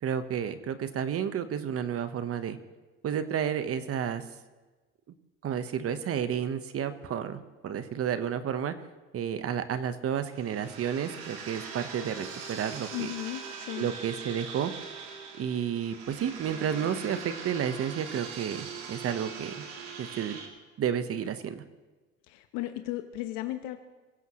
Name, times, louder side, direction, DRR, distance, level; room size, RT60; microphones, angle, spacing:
voice 1, 0.0-2.6 3.0-4.2 5.4-8.7 9.1-13.1 13.8-14.7 15.4-19.7 20.0-20.4 20.8-21.6, right 8 dB, 40° right, 11 dB, 1.2 m, -31 dB
liquid ghost, 10.2-20.5, right 6 dB, 75° right, 3.2 m, -41 dB
voice 2, 12.9-13.9 22.3-23.8, left 15 dB, 70° left, 7 dB, 1.1 m, -35 dB
23.5 x 15.5 x 3.2 m, 1.2 s
hypercardioid pair, 85°, 35 cm